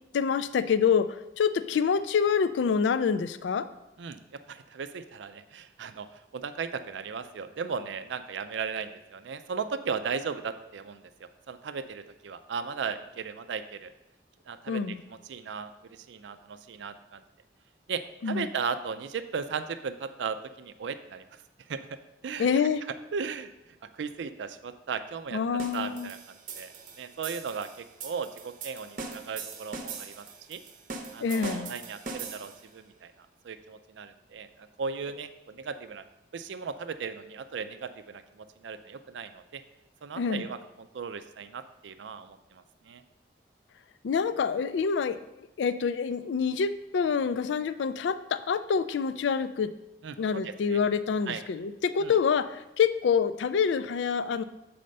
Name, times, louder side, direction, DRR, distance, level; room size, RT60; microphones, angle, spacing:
voice 1, 0.1-3.7 14.7-15.0 18.2-18.5 22.4-22.8 25.3-26.1 31.2-31.7 40.2-40.4 44.0-45.2 45.6-49.7 50.2-54.4, left 6 dB, 85° left, 13 dB, 0.3 m, -26 dB
voice 2, 4.0-13.9 14.5-17.2 17.9-21.2 21.7-21.8 22.2-22.5 23.1-25.4 25.7-26.2 26.5-30.6 31.1-33.1 33.4-36.0 36.3-39.6 40.0-43.0 50.0-50.8 51.3-51.4 52.0-52.2, right 5 dB, 90° right, 10 dB, 0.4 m, -37 dB
sound 1, 25.6-32.7, right 4 dB, 45° right, 0.7 m, -41 dB
7.6 x 4.2 x 5.3 m, 0.92 s
head